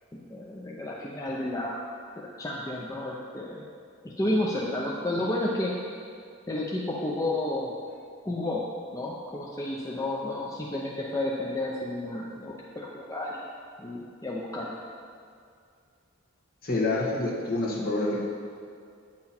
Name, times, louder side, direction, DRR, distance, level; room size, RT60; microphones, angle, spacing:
voice 1, 0.3-1.8 2.4-3.6 4.0-5.8 6.5-7.7 8.2-8.6 8.9-13.4 13.8-14.7, left 1 dB, 15° left, -4 dB, 0.5 m, -31 dB
voice 2, 16.6-18.2, left 2 dB, 45° left, -4 dB, 1.5 m, -27 dB
8.7 x 5.8 x 4.3 m, 2.3 s
head